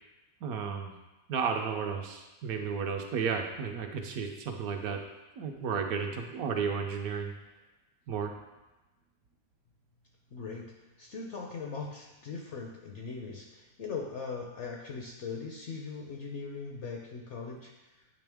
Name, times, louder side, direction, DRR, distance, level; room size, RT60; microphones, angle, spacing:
voice 1, 0.4-0.9 1.3-5.0 5.4-7.3 8.1-8.3, right 6 dB, 70° right, 3 dB, 1.0 m, -33 dB
voice 2, 10.3-10.7 11.0-17.7, left 4 dB, 65° left, 0 dB, 0.7 m, -40 dB
8.7 x 3.2 x 3.4 m, 1.1 s
omnidirectional pair, 1.7 m